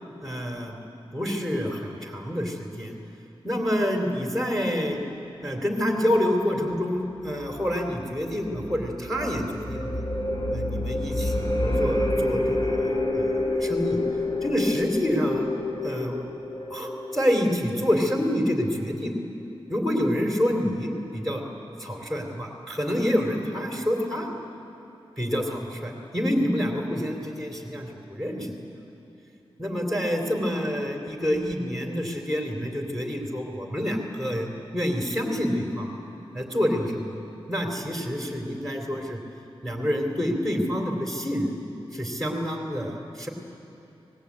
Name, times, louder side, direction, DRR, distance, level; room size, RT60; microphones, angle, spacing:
voice 1, 0.2-0.8 1.1-2.9 3.4-5.0 5.4-10.0 10.5-14.0 14.4-15.5 15.8-16.3 16.7-19.1 19.7-21.4 21.8-24.3 25.2-28.5 29.6-34.5 34.7-35.9 36.3-37.2 37.5-39.2 39.6-41.5 41.9-43.3, equal, 5° left, 1 dB, 3.0 m, -27 dB
sound 1, 7.2-17.6, left 2 dB, 40° left, 2.8 m, -28 dB
25.0 x 19.0 x 8.5 m, 2.9 s
wide cardioid pair, 90°, 10 cm